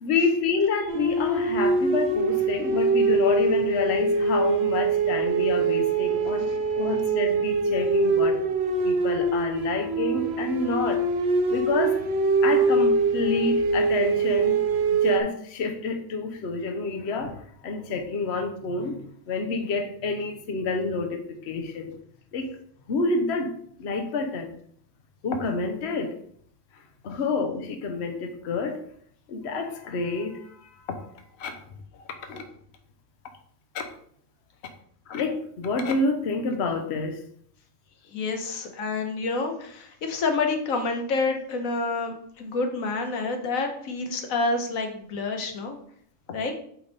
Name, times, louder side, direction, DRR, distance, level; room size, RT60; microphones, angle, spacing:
voice 1, 0.0-6.5 6.7-8.4 8.8-11.1 11.5-12.0 12.4-14.5 15.0-21.9 22.3-22.5 22.9-23.5 23.8-24.5 25.2-26.1 27.0-28.8 29.3-31.5 32.0-32.5 33.7-33.8 35.1-37.2, left 4 dB, 55° left, 5 dB, 1.1 m, -28 dB
sound 1, 0.9-15.2, right 3 dB, 55° right, 0.9 m, -23 dB
voice 2, 38.0-45.8 46.3-46.5, left 3 dB, 85° left, 5 dB, 1.4 m, -28 dB
8.7 x 3.4 x 4.1 m, 0.63 s
omnidirectional pair, 1.4 m